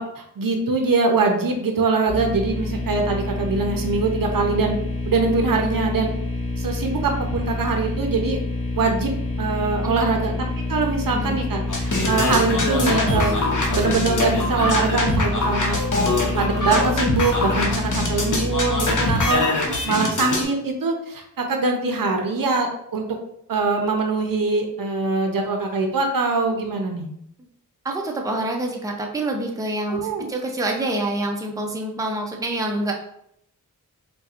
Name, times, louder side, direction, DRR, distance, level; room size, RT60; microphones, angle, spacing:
voice 1, 0.0-4.8 5.1-6.1 6.6-8.4 8.8-9.1 9.4-10.3 10.7-13.3 13.7-15.8 16.4-19.5 19.8-23.2 23.5-27.1 29.9-30.3, right 3 dB, 70° right, 3 dB, 0.6 m, -23 dB
sound 1, 2.1-19.3, left 2 dB, 15° left, 1.0 m, -27 dB
sound 2, 11.7-20.4, left 2 dB, 60° left, 0.8 m, -23 dB
voice 2, 27.8-32.9, right 1 dB, 10° right, 1 dB, 0.5 m, -27 dB
4.1 x 2.2 x 2.5 m, 0.72 s
wide cardioid pair, 50°, 35 cm